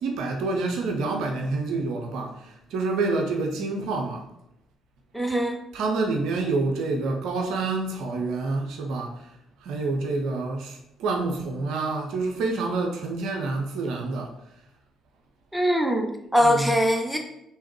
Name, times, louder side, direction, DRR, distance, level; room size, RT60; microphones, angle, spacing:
voice 1, 0.0-4.3 5.3-5.4 5.7-9.3 9.6-14.4 16.4-16.8, right 3 dB, 70° right, 0.5 m, -28 dB
voice 2, 5.1-5.6 15.5-17.2, equal, 5° right, 0.7 m, -22 dB
3.5 x 2.8 x 3.0 m
hypercardioid pair, 45°, 0 cm